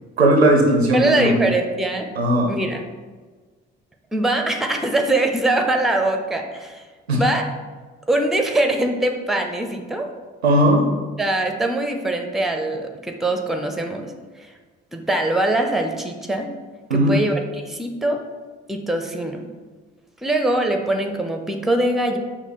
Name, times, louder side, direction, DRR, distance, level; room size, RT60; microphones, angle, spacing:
voice 1, 0.2-1.4 2.2-2.5 7.1-7.2 10.4-10.8 16.9-17.2, right 1 dB, 90° right, 2 dB, 0.5 m, -17 dB
voice 2, 0.9-2.1 2.5-2.8 4.1-6.8 7.1-7.4 8.1-10.1 11.2-14.1 14.4-14.5 14.9-16.5 16.9-18.2 18.7-19.4 20.2-22.2, right 2 dB, ahead, 4 dB, 0.5 m, -22 dB
5.6 x 2.1 x 4.3 m, 1.4 s
figure-of-eight pair, 40°, 31 cm